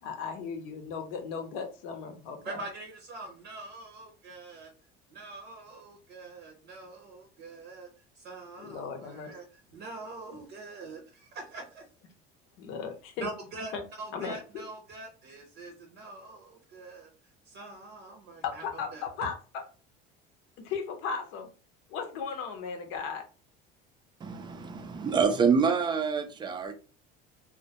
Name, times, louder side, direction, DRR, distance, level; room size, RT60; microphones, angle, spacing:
voice 1, 0.0-2.6 8.6-9.4 12.6-13.3 13.7-13.8 14.1-14.4 18.4-19.6 20.6-21.5 21.9-23.2, left 6 dB, 70° left, 0.7 m, -36 dB
voice 2, 2.4-4.7 5.1-7.9 8.2-9.4 9.7-11.8 13.2-13.7 14.0-17.1 17.5-18.6 18.9-19.0, right 3 dB, 55° right, 0.6 m, -44 dB
voice 3, 24.2-26.7, right 5 dB, 20° right, 0.4 m, -26 dB
2.2 x 2.1 x 2.8 m
cardioid pair, 125°, 21 cm